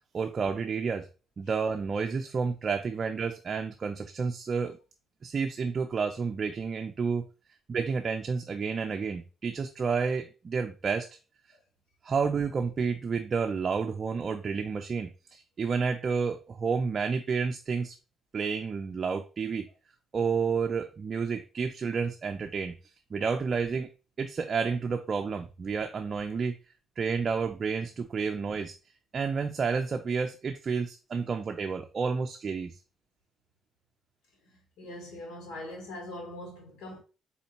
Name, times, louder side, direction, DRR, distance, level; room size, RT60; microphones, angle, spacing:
voice 1, 0.1-1.1 1.4-4.8 5.2-7.3 7.7-11.1 12.0-18.0 18.3-19.7 20.1-22.8 23.1-23.9 24.2-26.6 27.0-28.7 29.1-32.7, right 5 dB, 45° right, 0.4 m, -30 dB
voice 2, 34.8-37.0, left 1 dB, 85° left, 1.8 m, -41 dB
4.2 x 4.1 x 2.9 m
cardioid pair, 90°, 0 cm